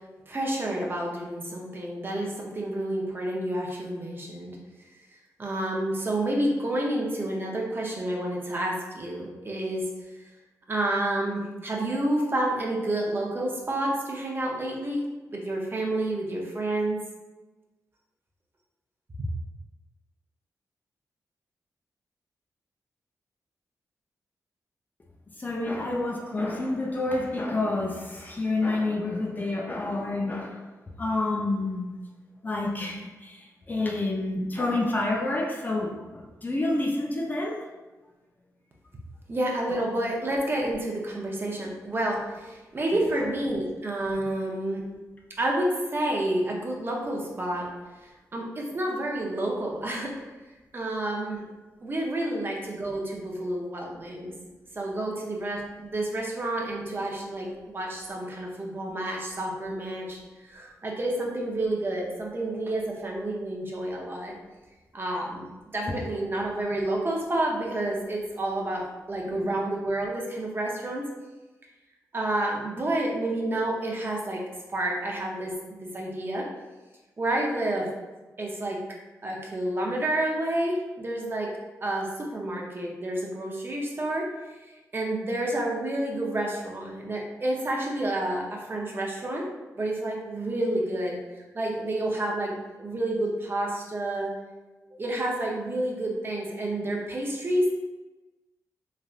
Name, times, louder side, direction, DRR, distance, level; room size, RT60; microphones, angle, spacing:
voice 1, 0.3-4.6 5.4-9.8 10.7-15.0 15.3-17.0 39.3-44.8 45.4-47.7 48.0-50.1 50.7-51.5 51.8-54.3 54.7-60.2 60.4-64.3 64.9-71.1 72.1-74.4 74.7-76.5 77.2-77.9 78.4-78.8 79.2-81.5 81.8-84.6 84.9-89.4 89.8-94.3 95.0-97.7, right 1 dB, 35° right, -2 dB, 0.6 m, -29 dB
voice 2, 25.4-30.7 31.0-31.9 32.4-37.7 69.3-69.5, left 2 dB, 30° left, -1 dB, 0.5 m, -29 dB
3.2 x 2.4 x 2.4 m, 1.2 s
cardioid pair, 85°, 6 cm